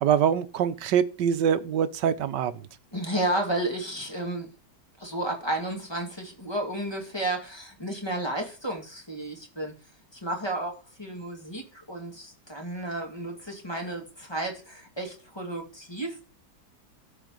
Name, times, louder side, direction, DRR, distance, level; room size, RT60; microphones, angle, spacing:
voice 1, 0.0-2.7, right 8 dB, 90° right, 1.5 m, -24 dB
voice 2, 2.9-4.5 5.0-9.7 10.1-16.2, right 1 dB, 15° left, 2.4 m, -32 dB
13.0 x 4.5 x 7.8 m
omnidirectional pair, 1.8 m